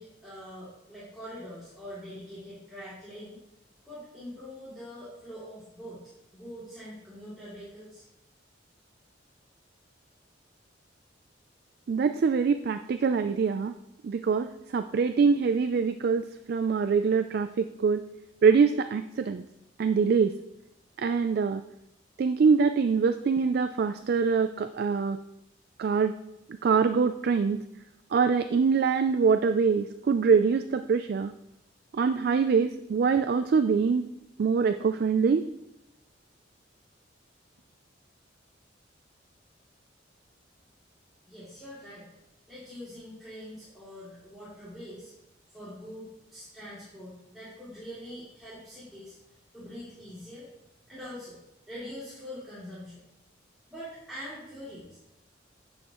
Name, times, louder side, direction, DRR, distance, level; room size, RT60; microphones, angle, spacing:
voice 1, 0.0-3.4 3.8-6.0 6.3-8.0 41.3-42.1 42.5-45.1 45.5-49.1 49.5-50.5 50.9-51.4 51.7-53.0 53.7-55.0, equal, ahead, -12 dB, 2.7 m, -43 dB
voice 2, 11.9-13.7 14.0-14.5 14.7-18.0 18.4-19.4 19.8-20.3 21.0-21.6 22.2-25.2 25.8-26.1 26.6-27.6 28.1-31.3 31.9-34.1 34.4-35.4, right 5 dB, 55° right, 9 dB, 0.3 m, -24 dB
9.9 x 6.2 x 3.0 m, 0.85 s
head